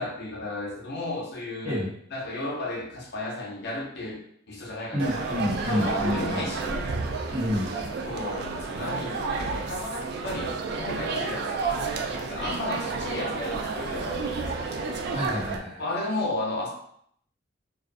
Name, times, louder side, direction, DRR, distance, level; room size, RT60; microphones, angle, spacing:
voice 1, 0.0-1.8 2.1-5.4 5.7-7.0 8.0-11.7 12.2-14.7 15.8-16.7, left 2 dB, 60° left, -3 dB, 0.6 m, -33 dB
voice 2, 4.9-6.5 7.3-7.7 15.1-15.9, equal, 30° right, -8 dB, 1.0 m, -29 dB
sound 1, 5.0-15.6, right 4 dB, 55° right, 0.3 m, -31 dB
2.3 x 2.2 x 2.5 m, 0.66 s
head